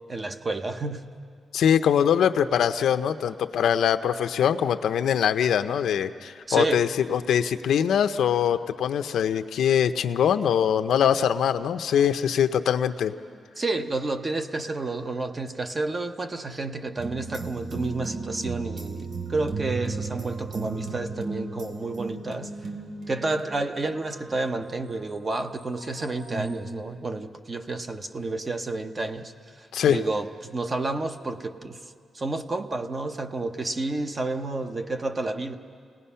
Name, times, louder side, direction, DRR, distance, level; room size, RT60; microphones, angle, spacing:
voice 1, 0.1-1.0 6.5-6.9 13.6-22.5 23.1-29.3 29.6-31.8 32.1-35.5, right 2 dB, 25° right, 7 dB, 0.8 m, -30 dB
voice 2, 1.5-13.1 29.7-30.0, left 8 dB, 85° left, 9 dB, 0.7 m, -23 dB
sound 1, 17.0-24.7 25.4-26.6, right 4 dB, 75° right, 2.4 m, -35 dB
30.0 x 19.0 x 5.7 m, 2.2 s
wide cardioid pair, 170°, 0 cm